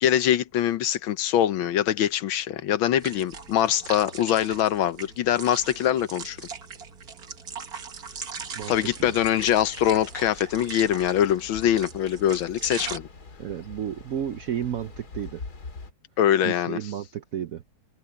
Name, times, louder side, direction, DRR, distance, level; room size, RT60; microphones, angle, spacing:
voice 1, 0.0-6.4 8.7-13.1 16.2-16.8, left 10 dB, 80° left, 1.7 m, -23 dB
sound 1, 3.0-13.0, right 5 dB, 50° right, 2.0 m, -40 dB
voice 2, 8.5-9.1 13.4-15.4 16.4-17.6, right 10 dB, 70° right, 0.8 m, -32 dB
sound 2, 8.6-15.9, left 3 dB, 50° left, 3.0 m, -44 dB
omnidirectional pair, 2.2 m